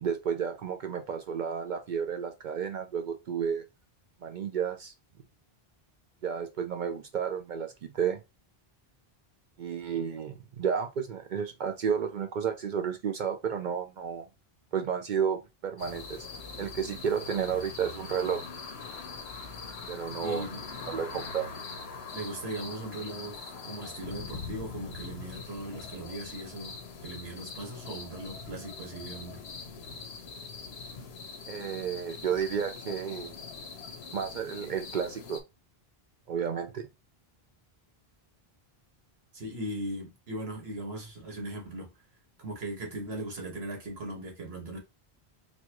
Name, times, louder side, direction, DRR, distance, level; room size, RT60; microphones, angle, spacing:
voice 1, 0.0-3.7 4.2-4.9 6.2-8.2 9.6-14.3 14.7-16.2 16.6-18.4 19.9-20.5 20.9-21.5 31.5-33.4 34.1-35.4 36.3-36.9, right 7 dB, 60° right, 0.6 m, -32 dB
sound 1, 15.8-35.4, left 4 dB, 85° left, 1.0 m, -42 dB
voice 2, 20.2-20.6 22.1-29.4 39.3-41.9 42.4-44.8, right 1 dB, 80° right, 1.6 m, -39 dB
4.1 x 2.3 x 2.9 m
omnidirectional pair, 1.0 m